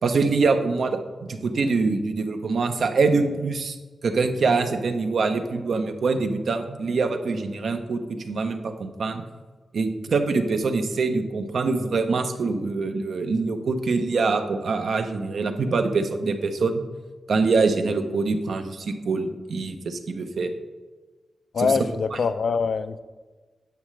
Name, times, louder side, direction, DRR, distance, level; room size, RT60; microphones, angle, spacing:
voice 1, 0.0-3.8 4.0-9.2 9.7-16.8 17.3-20.5 21.6-21.7, right 4 dB, 70° right, 7 dB, 0.7 m, -24 dB
voice 2, 21.5-23.0, left 5 dB, 65° left, 12 dB, 0.4 m, -24 dB
10.0 x 7.4 x 3.2 m, 1.3 s
wide cardioid pair, 110°, 0 cm